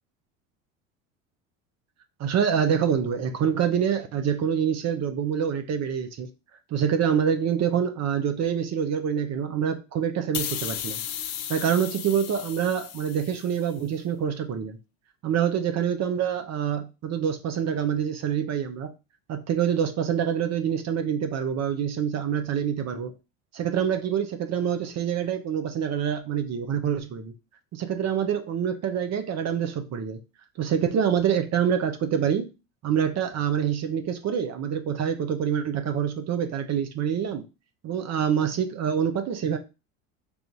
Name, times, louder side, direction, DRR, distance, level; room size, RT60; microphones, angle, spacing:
voice 1, 2.2-6.3 6.7-11.0 11.5-14.8 15.2-18.9 19.3-23.1 23.5-27.3 27.7-30.2 30.6-32.5 32.8-37.4 37.8-39.6, right 8 dB, 45° right, 0.7 m, -26 dB
sound 1, 10.3-13.7, left 10 dB, 65° left, 0.7 m, -35 dB
3.4 x 2.5 x 4.5 m
hypercardioid pair, 85°, 39 cm